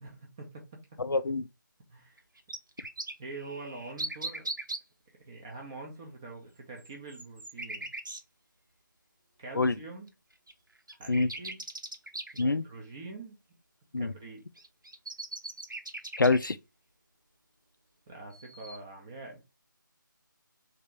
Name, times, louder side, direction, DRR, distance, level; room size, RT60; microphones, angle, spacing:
voice 1, 0.0-0.5 1.9-2.2 3.2-4.5 5.2-7.9 9.4-10.1 11.0-11.6 12.3-13.4 14.0-14.4 18.1-19.4, right 3 dB, 10° right, 0.5 m, -44 dB
voice 2, 1.0-1.5 9.6-9.7 11.1-11.3 12.4-12.6 13.9-14.1 16.2-16.6, left 3 dB, 70° left, 0.4 m, -25 dB
sound 1, 2.2-4.8 6.8-8.2 10.1-10.2 10.5-10.6 10.9-12.4 14.6-16.5 18.3-18.8, right 2 dB, 70° right, 0.8 m, -39 dB
3.3 x 2.5 x 4.3 m
figure-of-eight pair, 155°, 11 cm